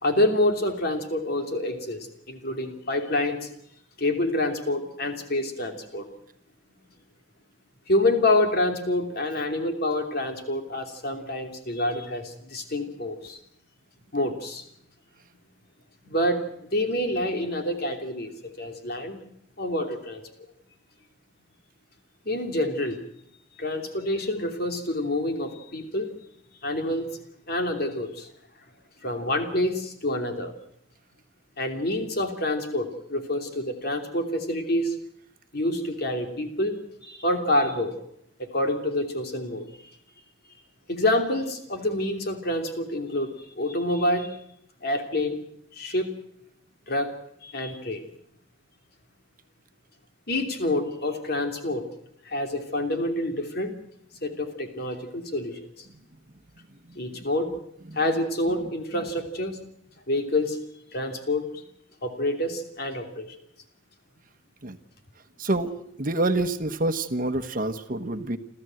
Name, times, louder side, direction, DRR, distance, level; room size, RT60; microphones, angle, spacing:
voice 1, 0.0-3.5 4.0-6.1 7.9-13.4 14.1-14.6 16.1-16.4 16.7-18.3 18.6-19.2 19.6-20.2 22.2-23.0 23.6-26.1 26.6-27.1 27.5-28.3 29.0-30.5 31.6-34.9 35.5-37.9 38.4-39.9 40.9-44.4 44.8-45.4 45.7-46.1 46.9-47.1 47.4-48.0 50.3-51.8 52.2-53.7 54.2-55.6 57.0-57.5 57.9-59.6 60.1-60.6 60.9-61.6 62.0-63.3, left 1 dB, 55° left, 4 dB, 3.1 m, -27 dB
voice 2, 65.4-65.7 66.0-68.4, right 2 dB, 45° right, 9 dB, 1.2 m, -27 dB
28.5 x 14.0 x 7.8 m, 0.75 s
head